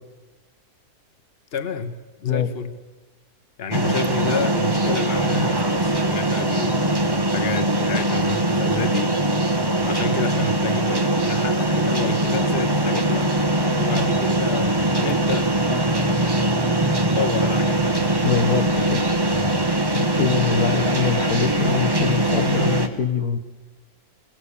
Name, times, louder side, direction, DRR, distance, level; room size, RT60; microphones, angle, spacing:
voice 1, 1.5-2.8 3.6-9.1 9.8-13.3 13.7-15.5 15.9-17.8, left 4 dB, 40° left, 7 dB, 1.5 m, -30 dB
sound 1, 3.7-22.9, right 1 dB, 15° right, 1.2 m, -21 dB
voice 2, 18.2-19.0 20.2-23.4, left 7 dB, 75° left, 7 dB, 1.7 m, -23 dB
25.0 x 18.0 x 8.5 m, 1.2 s
omnidirectional pair, 1.6 m